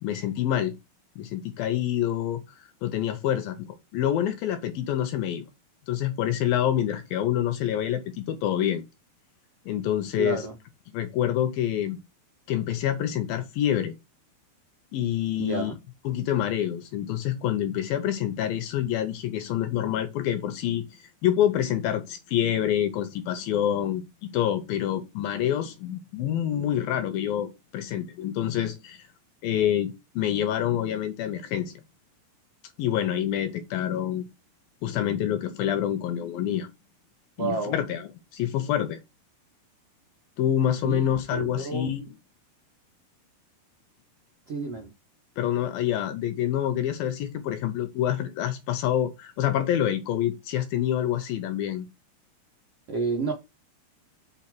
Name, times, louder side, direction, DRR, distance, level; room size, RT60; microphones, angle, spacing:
voice 1, 0.0-0.7 1.2-2.4 2.8-5.5 5.9-8.8 9.7-10.4 10.9-12.0 12.5-13.9 14.9-15.7 16.1-20.8 21.2-29.1 29.4-31.8 32.8-34.3 34.8-36.7 37.4-39.0 40.4-42.0 45.4-51.9, left 11 dB, 75° left, 2.4 m, -27 dB
voice 2, 10.2-10.5 15.4-15.8 37.4-37.8 40.8-41.9 44.5-44.9 52.9-53.3, right 4 dB, 65° right, 1.5 m, -30 dB
5.8 x 4.4 x 6.0 m
omnidirectional pair, 4.7 m